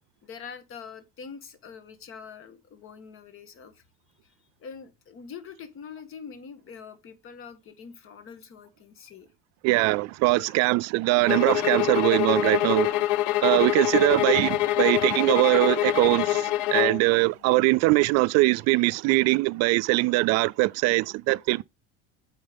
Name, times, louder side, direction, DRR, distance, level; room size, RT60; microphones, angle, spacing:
voice 1, 0.2-3.8 4.2-9.3 10.3-10.7, left 6 dB, 45° left, 1.7 m, -44 dB
voice 2, 9.6-12.9 13.4-21.6, right 22 dB, 60° right, 0.4 m, -22 dB
sound 1, 11.3-17.0, left 15 dB, 70° left, 0.7 m, -25 dB
9.2 x 4.3 x 5.2 m
cardioid pair, 125°, 30 cm